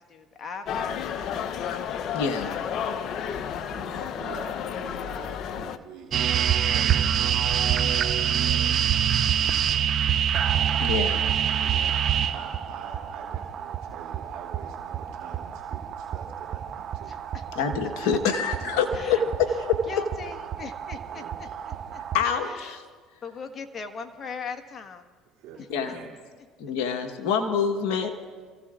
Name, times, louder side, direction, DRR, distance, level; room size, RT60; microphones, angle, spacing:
voice 1, 0.1-1.8 2.4-3.4 9.2-9.8 17.1-17.7 18.9-19.5 19.9-22.0 22.4-22.8 23.2-25.1 25.5-25.9, left 5 dB, 35° left, 4 dB, 1.5 m, -41 dB
sound 1, 0.7-5.8, left 8 dB, 55° left, 0.7 m, -32 dB
voice 2, 2.1-2.5 10.8-11.2 17.5-19.5 22.1-22.8 25.7-26.0 26.6-28.1, left 6 dB, 70° left, 4 dB, 1.2 m, -26 dB
voice 3, 3.3-7.3 7.6-9.6 11.2-12.0 12.3-17.2 18.7-19.3 21.0-21.7 25.4-26.2, right 6 dB, 70° right, -2 dB, 2.4 m, -45 dB
sound 2, 6.1-22.2, right 9 dB, 50° right, 0.9 m, -27 dB
28.5 x 15.5 x 2.5 m, 1.5 s
supercardioid pair, 85°, 0 cm